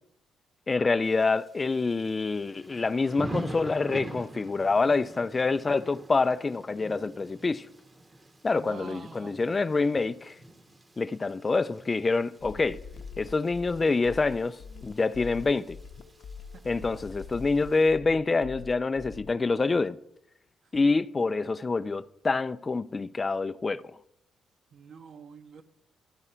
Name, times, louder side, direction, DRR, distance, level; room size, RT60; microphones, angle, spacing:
voice 1, 0.7-7.7 8.4-10.4 11.0-12.8 13.2-15.8 16.6-20.0 20.7-23.8, left 3 dB, 30° left, 0.3 m, -26 dB
Thunder / Rain, 1.0-17.9, right 1 dB, 25° right, 0.9 m, -45 dB
voice 2, 8.5-9.4 24.7-25.6, right 6 dB, 60° right, 0.9 m, -46 dB
sound 1, 12.4-19.5, left 5 dB, 65° left, 0.6 m, -44 dB
12.0 x 4.8 x 5.6 m
cardioid pair, 90°, 0 cm